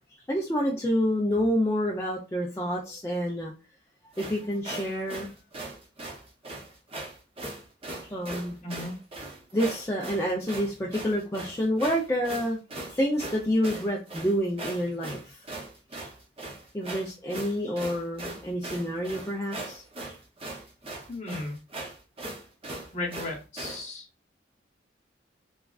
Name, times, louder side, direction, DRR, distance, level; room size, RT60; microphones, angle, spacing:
voice 1, 0.3-3.5 4.2-5.3 8.1-8.6 9.5-12.6 12.9-15.2 16.7-19.8, equal, 15° left, -2 dB, 0.3 m, -28 dB
sound 1, 4.1-23.8, right 2 dB, 30° right, 0.6 m, -39 dB
voice 2, 8.6-8.9 21.1-21.5 22.9-24.0, left 2 dB, 40° left, -2 dB, 0.9 m, -35 dB
3.1 x 2.3 x 2.3 m, 0.30 s
head